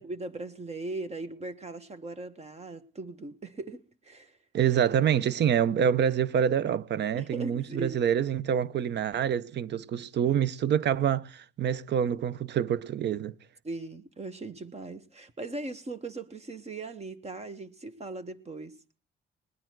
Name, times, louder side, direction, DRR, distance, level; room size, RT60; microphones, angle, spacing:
voice 1, 0.0-4.4 7.1-8.0 13.6-18.7, right 2 dB, 35° right, 1.4 m, -39 dB
voice 2, 4.5-13.3, right 9 dB, 60° right, 0.7 m, -26 dB
20.0 x 10.0 x 4.6 m
cardioid pair, 90°, 20 cm